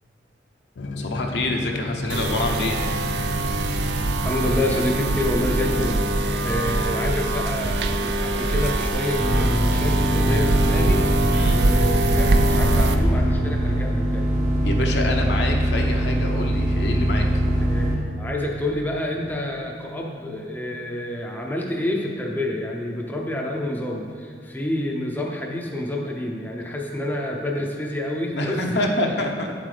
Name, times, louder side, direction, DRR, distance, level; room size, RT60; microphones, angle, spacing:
sound 1, 0.8-7.4, left 1 dB, 90° left, 0.5 m, -32 dB
voice 1, 1.0-2.8 11.3-11.8 14.6-17.4 28.3-29.5, left 2 dB, 70° left, 1 dB, 0.8 m, -26 dB
sound 2, 2.1-13.0, right 2 dB, 65° right, 0.5 m, -23 dB
voice 2, 4.2-11.0 11.5-14.3 17.6-28.9, left 1 dB, 10° left, -1 dB, 0.6 m, -28 dB
sound 3, 9.2-18.0, right 1 dB, 40° right, 1.0 m, -22 dB
8.7 x 7.5 x 3.3 m, 2.3 s
head